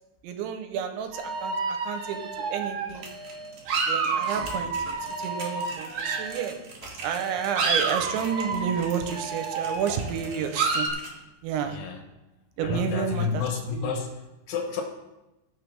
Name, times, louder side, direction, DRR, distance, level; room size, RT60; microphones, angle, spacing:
voice 1, 0.2-3.1 3.9-4.7 5.2-6.6 7.0-10.9 11.4-11.8 12.6-13.4 13.7-13.9, right 8 dB, 90° right, 7 dB, 3.1 m, -30 dB
sound 1, 1.0-12.1, equal, 15° left, 3.0 m, -49 dB
sound 2, 1.1-6.5 7.0-10.9, right 4 dB, 70° right, 1.8 m, -30 dB
sound 3, 2.8-11.1, right 3 dB, 55° right, 2.3 m, -45 dB
voice 2, 11.6-12.0 12.6-14.8, left 6 dB, 70° left, 3 dB, 3.0 m, -30 dB
18.5 x 6.4 x 3.4 m, 0.99 s
omnidirectional pair, 5.3 m